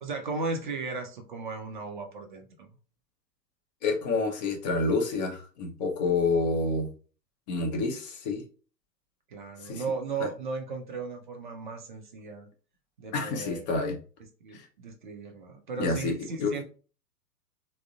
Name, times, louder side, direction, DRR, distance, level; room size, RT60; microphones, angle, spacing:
voice 1, 0.0-2.7 9.3-12.5 13.0-13.7 14.4-16.6, right 4 dB, 35° right, 4 dB, 0.4 m, -36 dB
voice 2, 3.8-6.9 7.5-8.4 9.6-9.8 10.2-10.3 13.1-14.0 14.5-14.6 15.8-16.5, left 3 dB, 25° left, 2 dB, 0.6 m, -28 dB
3.5 x 2.0 x 2.2 m, 0.37 s
figure-of-eight pair, 120°, 49 cm